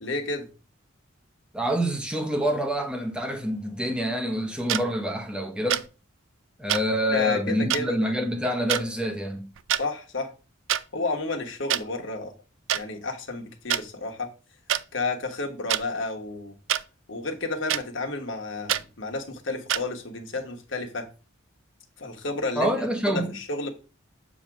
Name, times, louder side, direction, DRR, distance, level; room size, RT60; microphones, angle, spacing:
voice 1, 0.0-0.5 7.1-8.1 9.8-10.3 10.9-12.3 12.7-14.3 14.9-16.5 17.1-21.1 22.0-22.7 23.1-23.7, left 3 dB, 60° left, 1.3 m, -31 dB
voice 2, 1.5-5.9 6.6-9.5 22.6-23.4, equal, 5° right, 0.9 m, -27 dB
sound 1, 4.7-4.8 5.7-5.9 6.7-6.8 7.7-7.8 8.7-8.8 9.6-9.8 10.7-10.8 11.7-11.8 12.7-12.8 13.7-13.8 14.7-14.8 15.7-15.8 16.7-16.8 17.7-17.8 18.7-18.8 19.7-19.8, right 11 dB, 65° right, 0.4 m, -25 dB
7.3 x 2.9 x 5.9 m
head